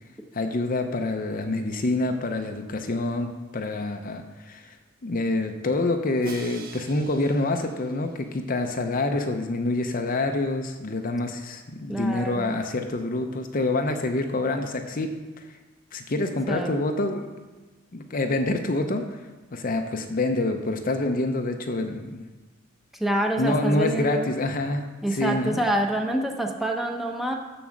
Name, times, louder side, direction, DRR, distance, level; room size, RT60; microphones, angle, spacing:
voice 1, 0.3-4.7 5.0-15.4 15.9-17.3 17.9-19.1 19.5-22.3 23.4-25.6, left 2 dB, 40° left, 5 dB, 0.6 m, -27 dB
Crash cymbal, 6.2-8.4, right 3 dB, 45° right, 1.0 m, -44 dB
voice 2, 11.9-12.6 16.5-16.7 23.0-24.3 25.0-27.3, right 1 dB, ahead, 1 dB, 0.8 m, -26 dB
7.1 x 7.0 x 6.3 m, 1.2 s
head